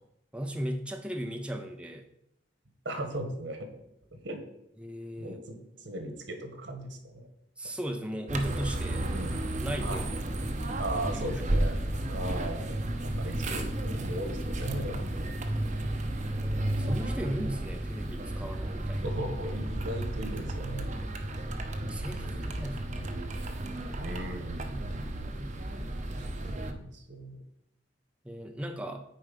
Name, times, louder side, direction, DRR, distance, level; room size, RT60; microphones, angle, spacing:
voice 1, 0.3-2.1 4.8-5.4 7.6-9.0 9.6-10.1 11.0-11.3 16.3-19.0 21.8-23.2 28.2-29.0, equal, 5° right, 4 dB, 0.6 m, -36 dB
voice 2, 2.8-3.8 4.1-4.4 5.2-7.3 8.9-9.4 9.8-10.1 10.8-11.8 12.1-15.0 19.0-21.0 22.1-22.6 24.0-24.9 26.2-27.4, right 1 dB, 75° right, 6 dB, 1.5 m, -38 dB
sound 1, 8.3-26.7, right 1 dB, 40° right, 0.8 m, -33 dB
9.0 x 4.7 x 5.3 m, 0.78 s
head